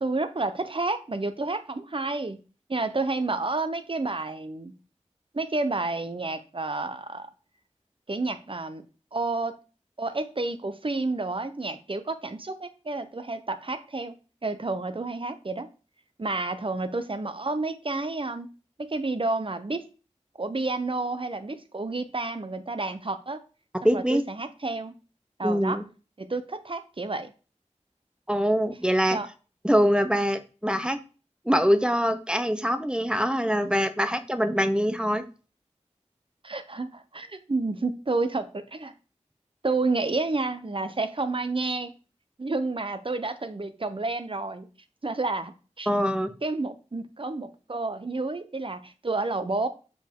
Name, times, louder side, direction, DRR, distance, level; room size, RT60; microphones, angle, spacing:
voice 1, 0.0-2.4 2.7-4.7 5.3-7.3 8.1-8.8 9.1-9.5 10.0-14.1 14.4-15.7 16.2-18.5 18.8-19.8 20.4-23.4 23.8-24.9 25.4-25.8 26.2-27.3 29.1-29.3 36.4-38.9 39.6-41.9 42.4-44.7 45.0-45.9 46.4-49.7, right 3 dB, 45° right, 9 dB, 0.9 m, -30 dB
voice 2, 23.8-24.2 25.4-25.8 28.3-29.2 29.6-31.0 31.5-35.2 45.9-46.3, equal, 10° right, 9 dB, 0.8 m, -24 dB
7.5 x 4.8 x 3.7 m, 0.34 s
wide cardioid pair, 60°, 12 cm